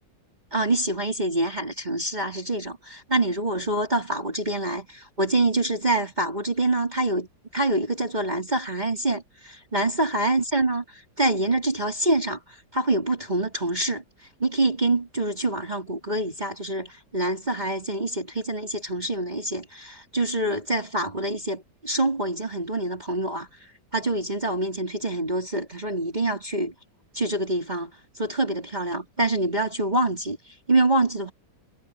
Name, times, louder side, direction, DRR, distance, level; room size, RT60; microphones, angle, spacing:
voice 1, 0.5-7.3 7.5-12.4 12.7-14.0 14.4-26.7 27.1-27.9 28.2-31.3, right 2 dB, 20° right, 4.1 m, -26 dB
omnidirectional pair, 2.0 m